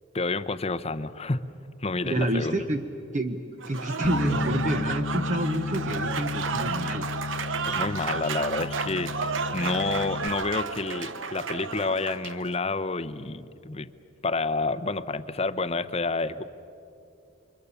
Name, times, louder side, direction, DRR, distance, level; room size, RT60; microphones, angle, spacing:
voice 1, 0.1-1.4 1.8-2.6 7.7-13.9 14.2-16.4, left 3 dB, 30° left, 12 dB, 0.7 m, -29 dB
voice 2, 2.0-2.8 3.1-7.1, right 1 dB, 35° right, 7 dB, 0.9 m, -28 dB
Applause / Crowd, 3.6-12.4, right 5 dB, 70° right, 0.9 m, -32 dB
Bass guitar, 4.0-10.3, left 4 dB, 70° left, 0.8 m, -33 dB
29.5 x 24.0 x 7.0 m, 2.7 s
head